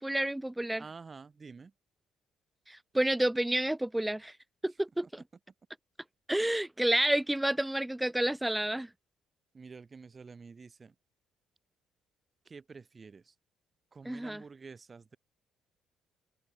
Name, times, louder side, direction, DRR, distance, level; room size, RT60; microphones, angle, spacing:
voice 1, 0.0-0.8 2.7-4.3 4.6-5.1 6.3-8.9 14.1-14.4, right 1 dB, 5° right, 0.4 m, -29 dB
voice 2, 0.8-1.7 9.5-10.9 12.4-13.3 13.9-15.2, right 4 dB, 30° right, 6.1 m, -49 dB
cardioid pair, 95°, 0 cm